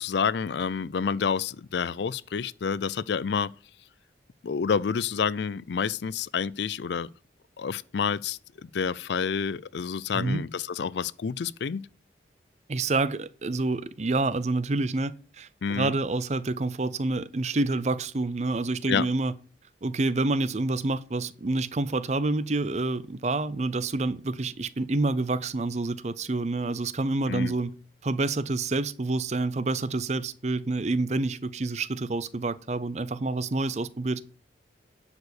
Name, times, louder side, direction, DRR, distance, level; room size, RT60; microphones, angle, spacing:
voice 1, 0.0-3.5 4.4-7.1 7.6-11.9 15.6-15.9 18.9-19.1 27.3-27.5, left 6 dB, 70° left, 0.4 m, -29 dB
voice 2, 12.7-19.3 19.8-27.7 28.0-34.2, right 2 dB, 40° right, 0.5 m, -28 dB
10.5 x 4.9 x 6.5 m
head